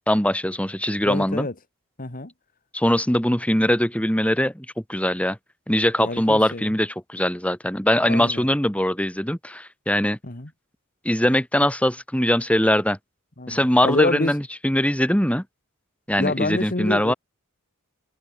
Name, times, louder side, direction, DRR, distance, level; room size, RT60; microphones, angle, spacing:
voice 1, 0.0-1.5 2.7-5.4 5.7-10.2 11.0-13.0 13.5-15.4 16.1-17.1, left 1 dB, 5° left, 5.0 m, -21 dB
voice 2, 1.0-1.5 2.0-2.3 6.0-6.7 8.1-8.5 10.2-10.5 13.4-14.3 16.2-17.1, left 2 dB, 40° left, 2.1 m, -27 dB
head